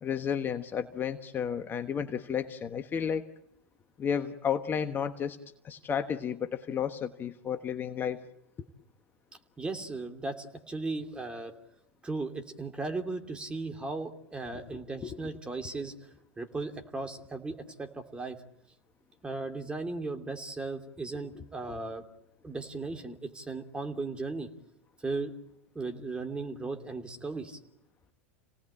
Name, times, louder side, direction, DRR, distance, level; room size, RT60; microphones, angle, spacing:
voice 1, 0.0-3.3 4.0-5.4 5.6-8.2 14.5-15.2, left 8 dB, 30° left, 8 dB, 1.3 m, -32 dB
voice 2, 9.6-11.6 12.0-15.9 16.4-18.4 19.2-22.0 22.4-24.5 25.0-25.3 25.7-27.6, right 3 dB, 15° right, 5 dB, 2.9 m, -36 dB
29.0 x 18.0 x 8.7 m, 0.84 s
hypercardioid pair, 95°, 7 cm